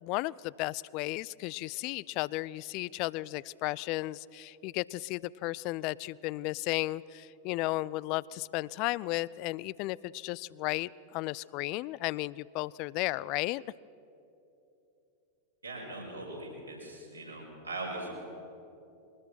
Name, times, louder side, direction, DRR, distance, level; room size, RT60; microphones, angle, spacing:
voice 1, 0.0-13.6, left 19 dB, 45° left, 23 dB, 0.3 m, -34 dB
voice 2, 15.6-18.1, right 2 dB, 80° right, -4 dB, 5.8 m, -40 dB
22.5 x 19.5 x 5.9 m, 2.9 s
figure-of-eight pair, 90°, 0 cm